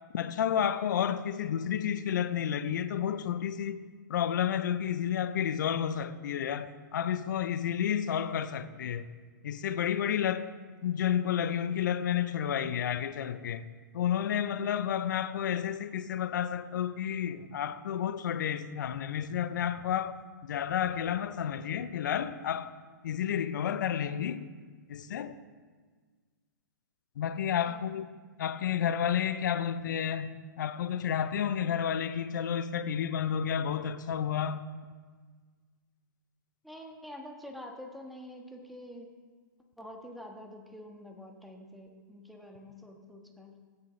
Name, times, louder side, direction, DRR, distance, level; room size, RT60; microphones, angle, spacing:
voice 1, 0.1-3.8 4.1-9.1 9.4-10.5 10.8-13.7 13.9-20.1 20.4-22.7 23.0-24.5 24.9-25.3 27.2-28.1 28.4-34.6, left 9 dB, 65° left, 0.6 m, -31 dB
voice 2, 36.6-39.1 39.8-43.5, left 1 dB, ahead, 1.3 m, -47 dB
17.0 x 6.7 x 3.1 m
hypercardioid pair, 120°, 11 cm